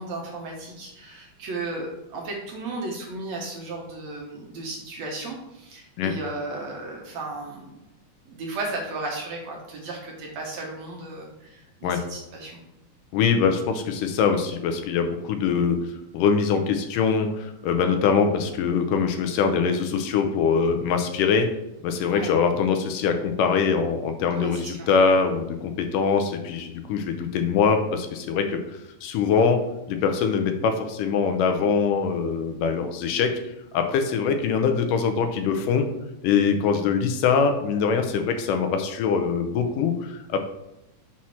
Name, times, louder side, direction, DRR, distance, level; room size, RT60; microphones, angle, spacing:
voice 1, 0.0-7.7 8.3-12.6 22.1-22.3 24.4-24.9, right 2 dB, 65° right, -1 dB, 2.0 m, -35 dB
voice 2, 13.1-15.8 16.1-21.5 21.8-28.6 29.0-29.6 29.9-33.3 33.7-35.9 36.2-40.4, left 6 dB, 80° left, 6 dB, 2.2 m, -23 dB
6.2 x 5.8 x 4.3 m, 0.91 s
omnidirectional pair, 3.9 m